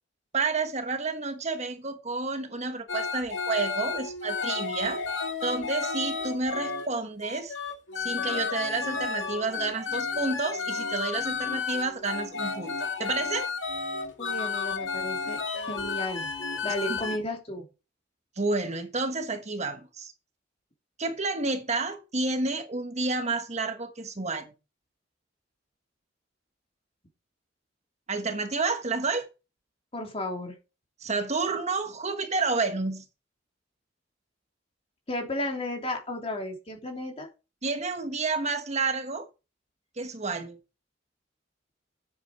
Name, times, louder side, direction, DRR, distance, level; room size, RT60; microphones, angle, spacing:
voice 1, 0.3-5.0 5.4-7.5 8.0-13.5 16.9-17.0 18.4-20.1 21.0-24.5 28.1-29.3 31.0-33.0 37.6-39.3 40.0-40.6, right 3 dB, 35° right, 1.2 m, -30 dB
sound 1, 2.9-6.9 7.2-17.2, left 5 dB, 70° left, 2.3 m, -32 dB
voice 2, 14.2-16.3 16.6-17.6 29.9-30.6 35.1-37.3, left 1 dB, 30° left, 3.2 m, -33 dB
9.4 x 8.7 x 4.7 m
head